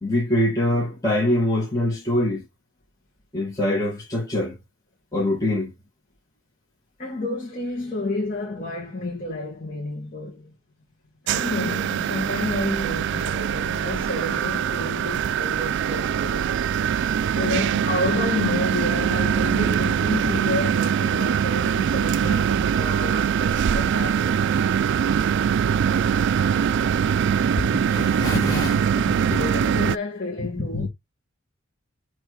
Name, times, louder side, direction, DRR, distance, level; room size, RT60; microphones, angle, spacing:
voice 1, 0.0-2.4 3.3-4.6 5.1-5.7 27.2-29.4 30.4-30.9, left 1 dB, 15° left, 1.6 m, -24 dB
voice 2, 7.0-10.5 11.2-16.5 17.3-24.8 29.2-30.9, left 2 dB, 40° left, 1.8 m, -30 dB
sound 1, 11.3-30.0, right 8 dB, 60° right, 0.3 m, -23 dB
8.9 x 3.2 x 4.9 m
head